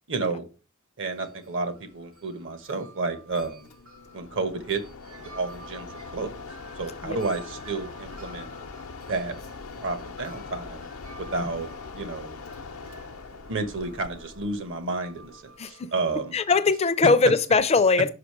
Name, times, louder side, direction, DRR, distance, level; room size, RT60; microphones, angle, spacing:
voice 1, 0.1-0.4 1.0-3.7 4.1-4.8 5.3-6.3 6.8-8.5 9.1-9.3 9.8-10.9 11.3-11.7 11.9-12.4 13.5-16.3, right 3 dB, 65° right, 1.1 m, -31 dB
Wind chime, 1.1-17.6, right 2 dB, 80° right, 2.0 m, -50 dB
Mechanisms, 3.3-15.7, left 4 dB, 85° left, 0.7 m, -42 dB
voice 2, 15.6-15.9 16.3-18.1, left 4 dB, 30° left, 0.4 m, -21 dB
5.8 x 4.9 x 4.7 m
head